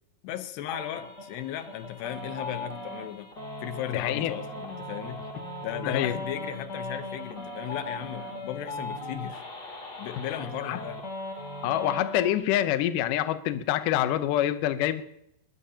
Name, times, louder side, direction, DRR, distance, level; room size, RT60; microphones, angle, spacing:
voice 1, 0.2-3.3 3.6-5.3 5.6-9.5 10.0-11.0, left 12 dB, 90° left, 9 dB, 3.2 m, -36 dB
sound 1, 0.7-12.3, left 1 dB, 25° left, 3.1 m, -38 dB
voice 2, 3.9-4.3 5.8-6.2 10.6-10.8 11.6-15.0, left 12 dB, 75° left, 11 dB, 2.0 m, -26 dB
21.5 x 20.0 x 2.9 m, 0.76 s
omnidirectional pair, 4.6 m